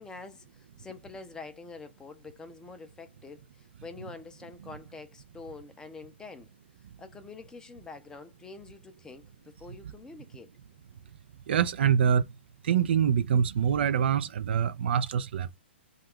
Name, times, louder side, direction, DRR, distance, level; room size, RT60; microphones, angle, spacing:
voice 1, 0.0-6.5 7.0-10.5, left 4 dB, 10° left, 0.5 m, -46 dB
voice 2, 11.5-12.3 12.6-15.6, right 8 dB, 65° right, 0.3 m, -25 dB
2.4 x 2.2 x 3.4 m
hypercardioid pair, 125°, 6 cm